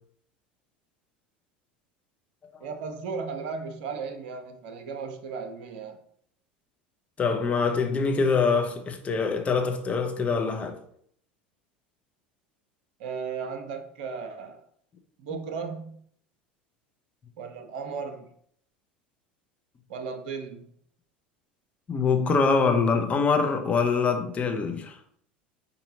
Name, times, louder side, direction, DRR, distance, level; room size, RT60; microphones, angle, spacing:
voice 1, 2.6-6.0 13.0-14.6 15.2-16.0 17.4-18.3 19.9-20.6, right 5 dB, 60° right, 0.6 m, -35 dB
voice 2, 7.2-10.8 21.9-25.0, left 5 dB, 25° left, 0.7 m, -24 dB
5.1 x 2.8 x 2.7 m
figure-of-eight pair, 75°, 5 cm